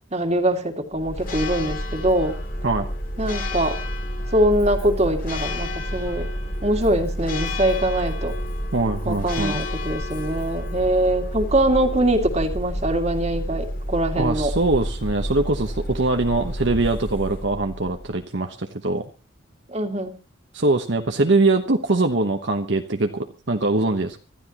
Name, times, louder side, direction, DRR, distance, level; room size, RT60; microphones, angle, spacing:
voice 1, 0.1-2.4 3.2-3.8 4.3-6.3 6.6-8.3 9.0-14.5 19.7-20.2, right 1 dB, 30° right, 5 dB, 2.2 m, -23 dB
Church bell, 0.9-18.2, equal, 45° left, 2.7 m, -29 dB
voice 2, 8.7-9.6 14.2-19.0 20.5-24.2, right 2 dB, 60° right, 5 dB, 1.1 m, -22 dB
25.5 x 13.0 x 3.0 m, 0.32 s
head